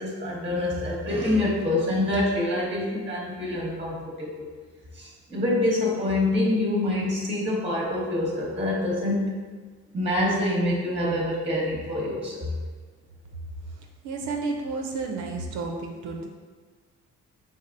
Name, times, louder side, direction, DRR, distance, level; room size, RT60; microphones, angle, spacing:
voice 1, 0.0-4.3 5.0-9.3 9.9-12.5, left 1 dB, 20° right, -2 dB, 0.8 m, -26 dB
voice 2, 13.8-16.3, right 3 dB, 75° right, 2 dB, 0.6 m, -32 dB
4.1 x 3.7 x 2.5 m, 1.4 s
cardioid pair, 90°, 30 cm